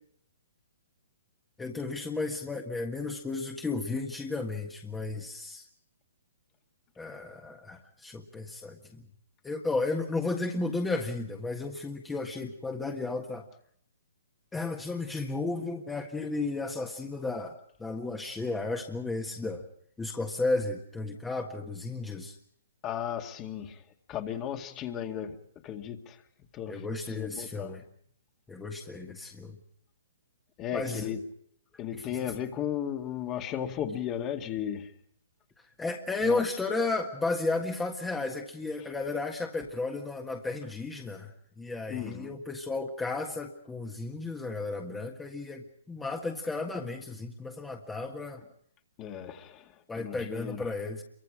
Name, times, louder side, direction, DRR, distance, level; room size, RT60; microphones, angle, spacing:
voice 1, 1.6-5.6 7.0-9.1 9.4-13.4 14.5-19.6 20.0-22.4 26.7-27.8 28.5-29.6 30.7-31.1 31.9-32.0 35.8-48.4 49.9-51.0, left 3 dB, 10° left, 2 dB, 1.7 m, -33 dB
voice 2, 22.8-23.8 24.1-25.4 25.6-26.2 26.5-27.7 30.6-31.2 31.8-34.9 36.2-36.4 41.9-42.4 49.0-50.7, left 9 dB, 25° left, 5 dB, 2.1 m, -35 dB
28.0 x 24.0 x 5.0 m, 0.64 s
hypercardioid pair, 130°, 0 cm